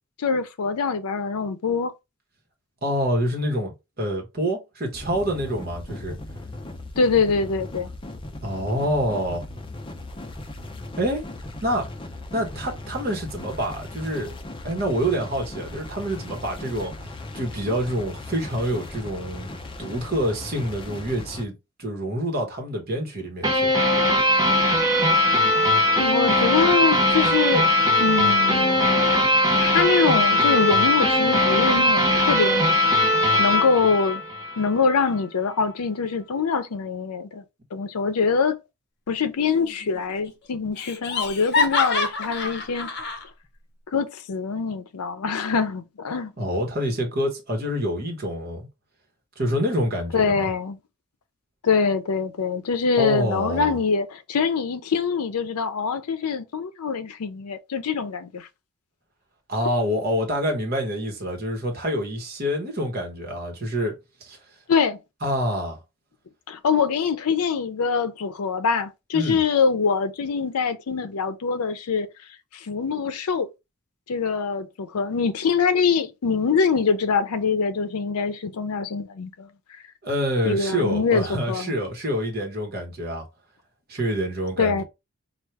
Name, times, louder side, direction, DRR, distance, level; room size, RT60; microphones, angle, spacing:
voice 1, 0.2-1.9 7.0-7.9 26.0-27.7 28.0-29.0 29.6-32.7 33.4-34.2 34.6-37.4 37.7-38.6 39.1-42.9 43.9-46.3 50.1-50.8 51.6-58.5 64.7-65.0 66.5-72.1 72.5-73.5 74.1-79.5 80.4-81.7 84.6-84.8, left 5 dB, 90° left, 0.5 m, -24 dB
voice 2, 2.8-6.2 8.4-9.4 11.0-11.2 11.6-11.9 12.3-14.4 14.6-19.5 19.8-23.8 46.4-48.7 49.4-50.5 53.0-53.8 59.5-64.4 65.2-65.8 69.1-69.4 80.0-83.3 83.9-84.8, equal, 45° right, 1.2 m, -27 dB
sound 1, 4.9-21.5, left 2 dB, 25° left, 0.5 m, -38 dB
sound 2, 23.4-34.7, left 1 dB, 15° right, 0.9 m, -20 dB
Laughter, 39.5-40.0 40.3-40.4 40.8-43.2, left 4 dB, 50° left, 0.7 m, -26 dB
4.5 x 2.4 x 3.3 m
head